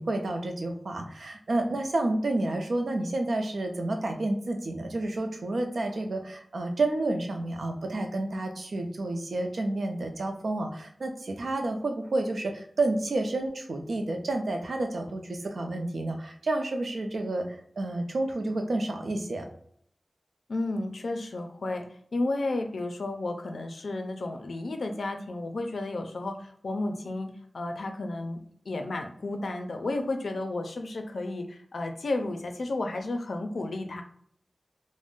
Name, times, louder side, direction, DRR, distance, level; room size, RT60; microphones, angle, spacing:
voice 1, 0.0-19.5, right 2 dB, 80° right, 4 dB, 0.5 m, -30 dB
voice 2, 20.5-21.8 22.1-28.4 28.7-34.0, left 2 dB, 85° left, 5 dB, 0.4 m, -32 dB
2.4 x 2.1 x 3.6 m, 0.64 s
wide cardioid pair, 90°, 0 cm